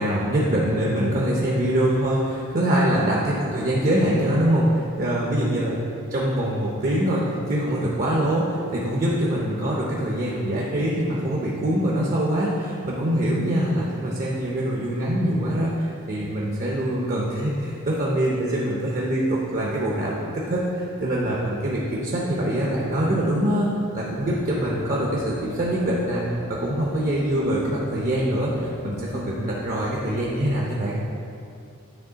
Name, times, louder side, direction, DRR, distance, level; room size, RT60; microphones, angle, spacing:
voice 1, 0.0-5.8 6.1-26.2 26.5-31.0, right 1 dB, 40° right, -4 dB, 0.6 m, -24 dB
sound 1, 24.3-30.5, left 2 dB, 20° left, 0.3 m, -40 dB
9.1 x 3.1 x 3.9 m, 2.5 s
head